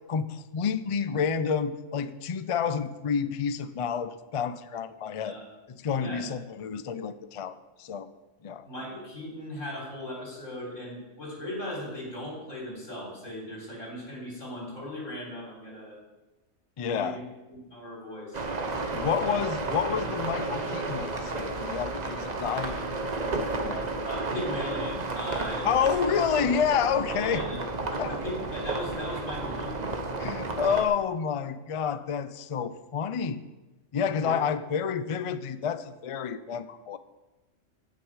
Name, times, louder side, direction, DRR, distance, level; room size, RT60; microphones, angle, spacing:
voice 1, 0.1-5.4 5.7-8.1 8.4-8.7 16.8-17.2 18.9-22.8 23.6-23.9 25.6-27.5 28.0-28.2 30.2-33.4 33.9-37.0, left 7 dB, 60° left, 12 dB, 0.3 m, -29 dB
voice 2, 8.6-16.0 16.9-17.2 17.5-18.4 19.2-19.5 22.6-22.7 24.1-25.9 27.1-27.6 27.9-29.9 34.2-34.4, left 1 dB, 85° left, -3 dB, 3.9 m, -38 dB
sound 1, 18.3-30.9, right 3 dB, 40° right, 0.9 m, -32 dB
15.5 x 6.4 x 4.8 m, 1.1 s
omnidirectional pair, 1.3 m